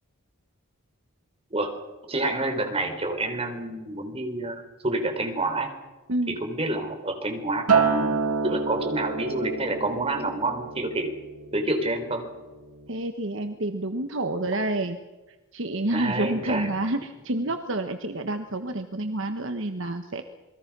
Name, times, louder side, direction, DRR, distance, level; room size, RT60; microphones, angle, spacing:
voice 1, 2.1-5.7 6.4-8.1 8.4-11.1 11.5-12.2 15.9-16.7, right 2 dB, 25° right, 5 dB, 3.9 m, -28 dB
Acoustic guitar, 7.7-12.1 12.5-12.9, right 5 dB, 80° right, 2.0 m, -27 dB
voice 2, 12.9-15.0 15.5-20.2, right 1 dB, 55° right, 7 dB, 1.3 m, -28 dB
28.5 x 21.0 x 6.2 m, 1.2 s
head